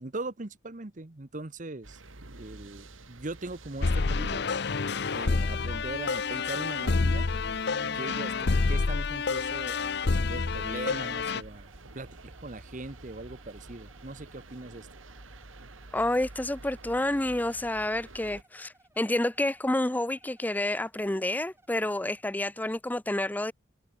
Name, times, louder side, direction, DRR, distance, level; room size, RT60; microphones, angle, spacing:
voice 1, 0.0-2.0 2.3-4.5 5.1-7.3 7.8-14.9, right 2 dB, 40° right, 1.1 m, -40 dB
sound 1, 1.8-18.4, right 2 dB, 90° right, 2.8 m, -49 dB
sound 2, 3.8-11.4, left 4 dB, 55° left, 0.7 m, -28 dB
sound 3, 11.5-22.2, right 2 dB, 15° right, 5.6 m, -64 dB
voice 2, 15.9-23.5, left 1 dB, 10° left, 0.5 m, -29 dB
head